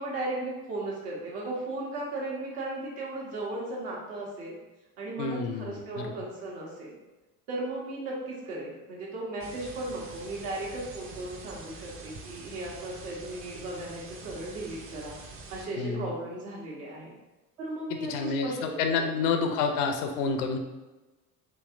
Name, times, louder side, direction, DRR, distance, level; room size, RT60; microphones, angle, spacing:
voice 1, 0.0-4.6 5.0-6.9 7.5-15.1 15.5-17.1 17.6-19.1, right 2 dB, 70° right, -4 dB, 1.2 m, -36 dB
voice 2, 5.2-6.1 15.8-16.1 17.9-20.6, left 5 dB, 70° left, 5 dB, 0.6 m, -29 dB
sound 1, 9.4-15.7, right 3 dB, 30° right, 0.5 m, -45 dB
3.1 x 2.8 x 2.5 m, 1.1 s
hypercardioid pair, 65°, 47 cm